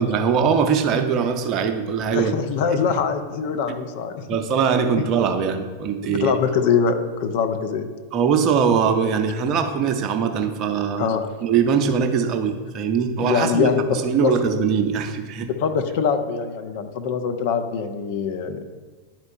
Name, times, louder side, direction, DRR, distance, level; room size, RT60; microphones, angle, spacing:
voice 1, 0.0-2.3 3.7-3.8 4.3-6.3 8.1-11.1 11.4-15.5, right 6 dB, 35° right, 6 dB, 0.6 m, -21 dB
voice 2, 2.1-4.2 6.0-6.9 7.2-7.9 11.0-11.2 13.2-14.3 15.4-18.7, left 6 dB, 50° left, 7 dB, 0.5 m, -23 dB
10.5 x 4.3 x 2.6 m, 1.4 s
figure-of-eight pair, 90°, 0 cm